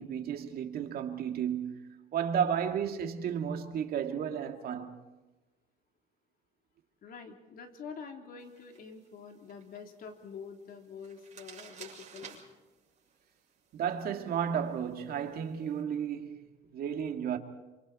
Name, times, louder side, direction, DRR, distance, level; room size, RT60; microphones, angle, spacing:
voice 1, 0.0-1.8 2.1-5.0 13.7-17.4, right 8 dB, 65° right, 2.3 m, -33 dB
voice 2, 7.0-12.4, left 6 dB, 60° left, 3.4 m, -46 dB
sound 1, 8.4-15.8, right 7 dB, 45° right, 6.6 m, -55 dB
27.5 x 25.5 x 4.4 m
cardioid pair, 110°, 17 cm